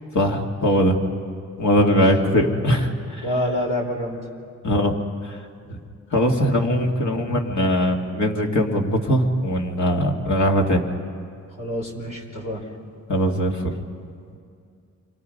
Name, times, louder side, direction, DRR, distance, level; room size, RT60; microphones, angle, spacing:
voice 1, 0.1-1.0 1.6-3.2 4.6-4.9 5.2-5.4 5.7-5.8 6.1-10.8 13.1-13.7, equal, 65° left, 1 dB, 2.5 m, -21 dB
voice 2, 1.8-2.1 3.2-4.2 9.9-10.1 11.6-12.6 14.3-14.4, equal, 80° left, 0 dB, 4.2 m, -28 dB
29.0 x 24.5 x 5.4 m, 2.3 s
cardioid pair, 70°, 31 cm